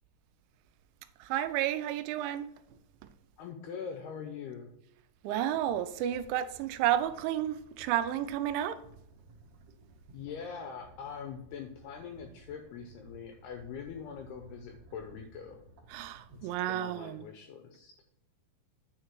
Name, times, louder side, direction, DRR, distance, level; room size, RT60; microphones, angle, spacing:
voice 1, 1.2-2.5 3.0-3.1 5.2-8.8 15.9-17.3, right 11 dB, 85° right, 2.8 m, -31 dB
voice 2, 3.4-4.7 10.1-15.6 16.3-17.9, left 6 dB, 80° left, 2.3 m, -43 dB
sound 1, 5.4-16.9, right 2 dB, 60° right, 1.8 m, -57 dB
9.5 x 4.8 x 4.5 m
omnidirectional pair, 5.4 m